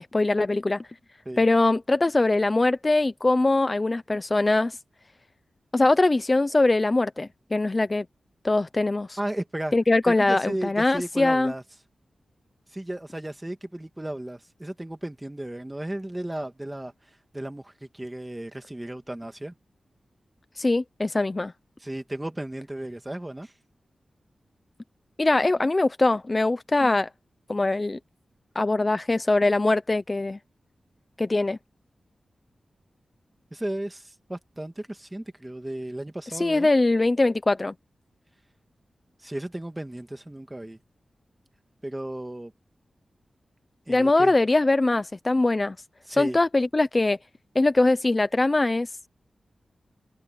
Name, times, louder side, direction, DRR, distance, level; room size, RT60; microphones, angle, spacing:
voice 1, 0.1-0.9 1.4-4.8 5.7-8.1 8.4-9.2 9.7-11.5 20.6-21.5 25.2-27.1 27.5-28.0 28.5-30.4 31.2-31.6 36.3-37.7 43.9-45.8 46.1-47.2 47.5-48.9, left 2 dB, 30° left, 0.7 m, -22 dB
voice 2, 9.2-9.7 10.1-11.6 12.7-19.5 21.8-23.5 33.5-36.7 39.2-40.8 41.8-42.5 43.9-44.4 46.1-46.4, right 1 dB, 15° right, 2.1 m, -34 dB
wide cardioid pair, 105°, 0 cm